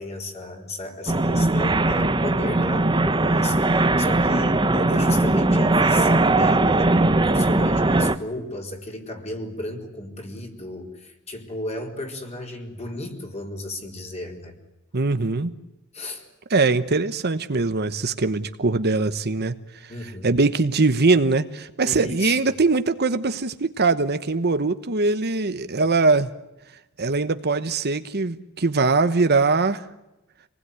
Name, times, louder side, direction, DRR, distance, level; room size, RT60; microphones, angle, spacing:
voice 1, 0.0-14.6 15.9-16.2 19.9-20.4 21.8-22.4, left 1 dB, 30° left, 2 dB, 4.3 m, -34 dB
sound 1, 1.1-8.2, right 2 dB, 20° right, 1.0 m, -20 dB
voice 2, 14.9-15.5 16.5-19.5 19.8-19.9 20.2-26.3 27.0-29.8, right 3 dB, 50° right, 10 dB, 1.1 m, -21 dB
27.5 x 19.5 x 9.6 m, 0.96 s
head